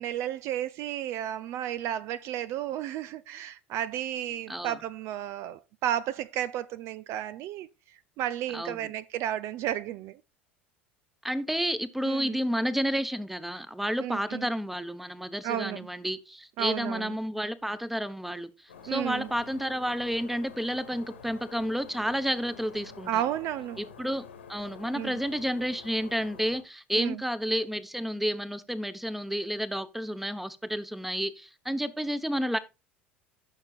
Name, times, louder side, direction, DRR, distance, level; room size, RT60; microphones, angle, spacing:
voice 1, 0.0-7.7 8.2-10.2 12.0-12.4 14.0-14.5 15.4-15.9 16.6-17.1 18.9-19.3 23.1-23.8 24.9-25.2 26.9-27.2, right 11 dB, 50° right, 0.5 m, -32 dB
voice 2, 8.5-8.9 11.2-18.5 18.8-23.2 23.8-32.6, equal, 5° right, 1.0 m, -31 dB
sound 1, 18.7-26.6, left 6 dB, 80° left, 1.9 m, -48 dB
15.0 x 6.6 x 2.5 m
figure-of-eight pair, 70°, 6 cm